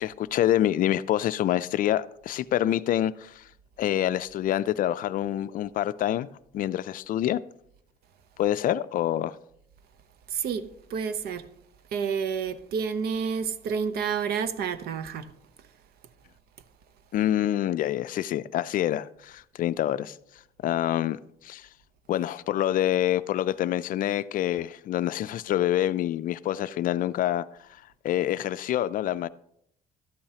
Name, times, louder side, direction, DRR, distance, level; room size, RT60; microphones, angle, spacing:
voice 1, 0.0-3.4 3.8-6.3 6.5-7.4 8.4-9.4 17.1-20.2 20.6-21.7 22.1-27.5 28.0-29.3, left 12 dB, 55° left, 0.4 m, -26 dB
voice 2, 10.3-10.6 10.9-11.4 11.9-15.3, right 6 dB, 70° right, 0.7 m, -29 dB
12.0 x 8.7 x 2.8 m
cardioid pair, 110°, 17 cm